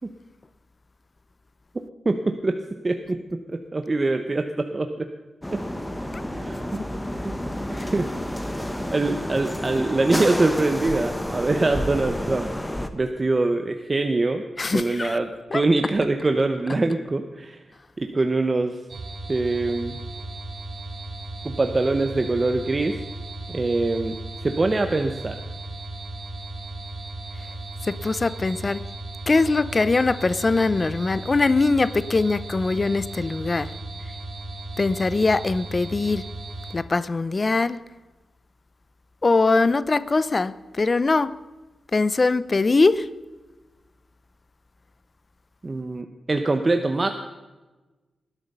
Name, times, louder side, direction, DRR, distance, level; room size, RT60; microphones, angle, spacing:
voice 1, 2.0-2.6 2.8-5.1 5.5-5.6 6.3-6.8 7.2-7.3 7.7-8.1 8.4-12.5 12.9-17.6 18.0-18.8 19.3-20.0 21.4-23.0 23.5-24.1 24.4-25.4 45.6-47.1, right 2 dB, 25° right, 0.8 m, -24 dB
sound 1, 5.4-12.9, left 1 dB, 10° left, 1.0 m, -30 dB
voice 2, 14.6-15.2 15.5-15.6 27.8-28.8 29.3-33.7 34.8-36.2 36.7-37.8 39.2-41.4 41.9-43.1, left 3 dB, 30° left, 0.5 m, -22 dB
sound 2, 18.9-36.8, right 2 dB, 45° right, 1.3 m, -36 dB
20.0 x 11.5 x 5.5 m
wide cardioid pair, 155°, 0 cm